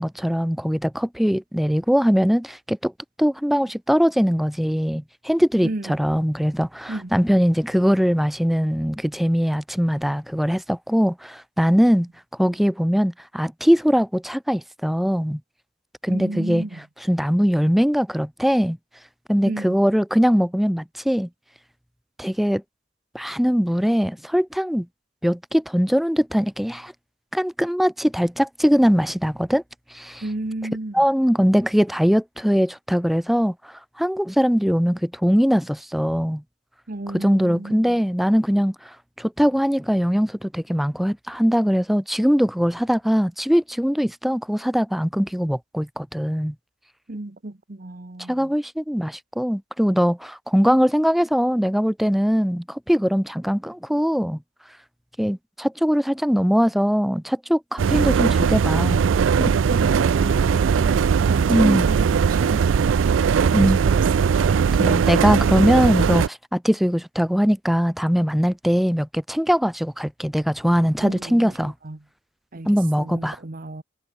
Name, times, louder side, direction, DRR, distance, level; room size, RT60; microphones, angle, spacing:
voice 1, 0.0-2.9 3.2-12.1 12.4-15.4 16.0-16.6 17.1-18.8 19.3-21.3 22.2-22.6 23.1-24.9 25.2-26.9 27.3-29.6 29.9-30.2 30.9-36.4 37.1-46.5 48.3-54.4 55.2-59.0 59.4-59.5 61.5-61.9 63.5-63.8 64.8-71.7 72.7-73.4, equal, ahead, 0.4 m, -21 dB
voice 2, 5.6-5.9 6.9-7.1 16.1-16.9 19.4-19.8 30.2-31.0 36.9-38.0 47.1-48.5 59.7-64.9 71.0-72.0 72.5-73.8, right 2 dB, 45° right, 1.1 m, -33 dB
sound 1, 57.8-66.3, right 6 dB, 85° right, 0.4 m, -19 dB
head